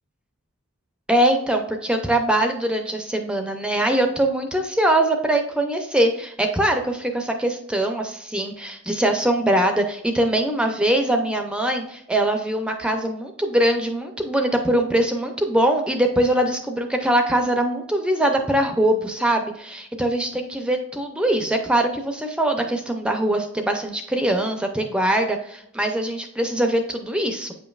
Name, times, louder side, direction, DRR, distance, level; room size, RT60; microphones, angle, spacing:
voice 1, 1.1-27.5, right 1 dB, 5° right, 4 dB, 0.4 m, -22 dB
8.3 x 5.2 x 2.3 m, 0.77 s
head